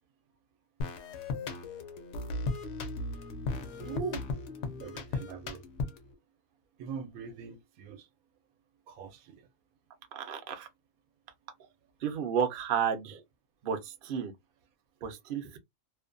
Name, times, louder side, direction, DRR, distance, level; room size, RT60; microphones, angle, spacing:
sound 1, 0.8-6.1, left 3 dB, 65° left, 0.9 m, -36 dB
voice 1, 3.7-4.2 4.8-5.6 6.8-8.1 8.9-9.4, right 6 dB, 85° right, 1.0 m, -41 dB
voice 2, 10.1-10.7 12.0-13.2 13.6-14.3 15.0-15.6, right 7 dB, 55° right, 0.6 m, -32 dB
2.5 x 2.1 x 2.4 m
omnidirectional pair, 1.5 m